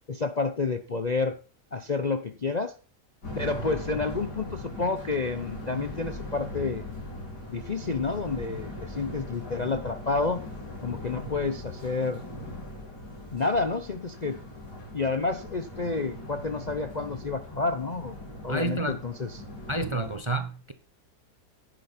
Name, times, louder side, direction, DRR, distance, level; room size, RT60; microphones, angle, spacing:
voice 1, 0.1-1.4 1.7-2.7 3.3-6.8 7.5-10.4 10.8-12.2 13.3-14.4 14.9-18.1 18.4-19.4, left 4 dB, 40° left, 0.6 m, -29 dB
sound 1, 3.2-20.2, left 1 dB, 90° left, 5.4 m, -40 dB
voice 2, 18.5-19.0 19.7-20.7, right 2 dB, 25° right, 0.7 m, -29 dB
10.5 x 10.0 x 4.3 m
omnidirectional pair, 1.7 m